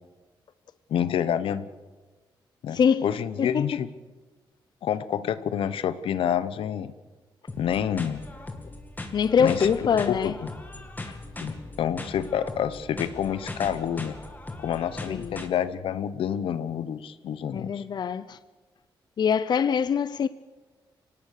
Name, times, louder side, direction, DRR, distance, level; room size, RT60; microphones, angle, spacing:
voice 1, 0.9-1.6 2.6-3.9 4.8-6.9 7.6-8.3 9.4-9.7 10.1-10.3 11.4-14.2 14.6-17.8, left 9 dB, 85° left, 1.0 m, -28 dB
voice 2, 2.7-3.1 3.4-3.8 9.1-10.3 11.1-11.2 15.1-15.4 17.5-18.4 19.2-20.3, left 7 dB, 55° left, 0.6 m, -24 dB
sound 1, 7.5-15.5, left 2 dB, 20° left, 2.6 m, -39 dB
24.5 x 18.5 x 6.7 m
cardioid pair, 105°, 9 cm